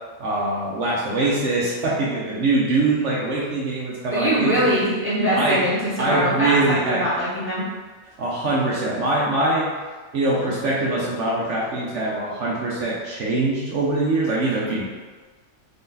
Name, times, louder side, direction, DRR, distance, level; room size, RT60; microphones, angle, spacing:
voice 1, 0.2-4.7 5.3-5.7 6.0-7.0 8.2-9.7 10.1-14.9, right 2 dB, 70° right, -5 dB, 1.0 m, -23 dB
voice 2, 4.1-7.7, equal, 10° right, -9 dB, 1.1 m, -22 dB
4.0 x 2.7 x 3.7 m, 1.3 s
omnidirectional pair, 1.3 m